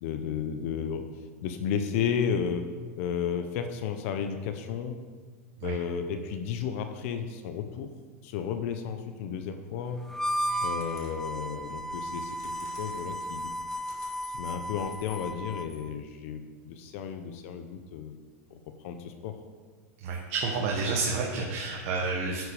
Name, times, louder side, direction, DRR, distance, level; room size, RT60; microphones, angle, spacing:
voice 1, 0.0-1.0 1.4-2.7 3.0-5.0 5.6-7.9 8.2-10.0 10.6-13.5 14.2-18.1 18.5-18.6 18.8-19.4, left 7 dB, 60° left, 7 dB, 0.9 m, -33 dB
Harmonica, 10.1-15.8, equal, 5° left, 0.5 m, -34 dB
sound 1, 10.8-11.3 12.0-15.9, left 5 dB, 75° left, 2.9 m, -52 dB
voice 2, 20.0-22.4, right 4 dB, 55° right, -1 dB, 1.6 m, -29 dB
9.9 x 8.0 x 5.0 m, 1.5 s
hypercardioid pair, 115°, 8 cm